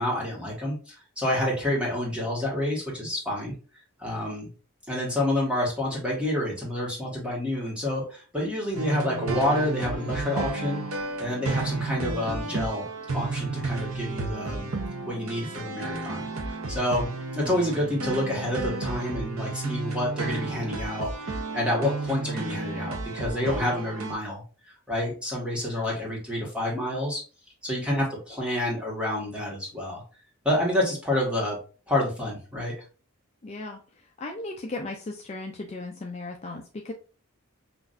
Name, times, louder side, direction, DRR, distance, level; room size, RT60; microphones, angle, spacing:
voice 1, 0.0-3.5 4.0-4.5 4.9-10.8 11.2-12.8 13.1-14.7 15.1-17.1 17.4-27.2 27.6-30.0 30.4-31.6 31.9-32.7, left 1 dB, 5° right, -3 dB, 1.4 m, -28 dB
sound 1, 8.7-24.1, right 3 dB, 70° right, 0.8 m, -32 dB
voice 2, 33.4-36.9, left 2 dB, 30° left, 2 dB, 0.4 m, -36 dB
5.9 x 2.5 x 2.5 m, 0.36 s
head